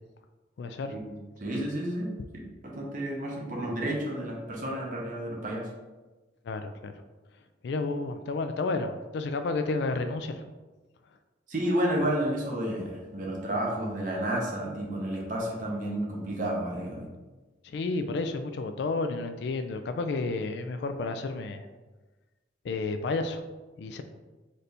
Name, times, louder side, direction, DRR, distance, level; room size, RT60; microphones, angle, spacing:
voice 1, 0.6-0.9 6.4-6.9 7.6-10.4 17.6-21.6 22.6-23.4 23.8-24.0, left 3 dB, 60° left, 8 dB, 0.3 m, -31 dB
voice 2, 1.4-2.1 2.6-5.7 11.5-17.1, right 1 dB, 45° right, -1 dB, 0.8 m, -31 dB
4.2 x 2.6 x 3.3 m, 1.2 s
head